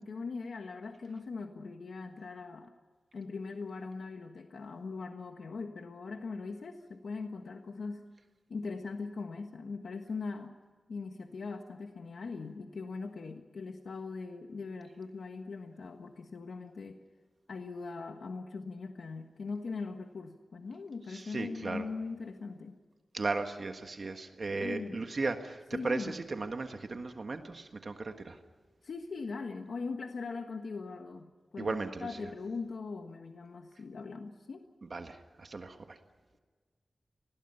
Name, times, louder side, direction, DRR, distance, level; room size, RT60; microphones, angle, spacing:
voice 1, 0.0-2.7 3.1-8.0 8.5-10.6 10.9-17.0 17.5-22.8 24.6-25.0 25.7-26.2 28.8-34.6, left 4 dB, 80° left, 5 dB, 1.4 m, -40 dB
voice 2, 21.1-21.8 23.1-28.4 31.6-32.1 34.9-36.0, right 3 dB, 45° right, 6 dB, 1.6 m, -36 dB
30.0 x 20.5 x 5.7 m, 1.5 s
wide cardioid pair, 140°, 0 cm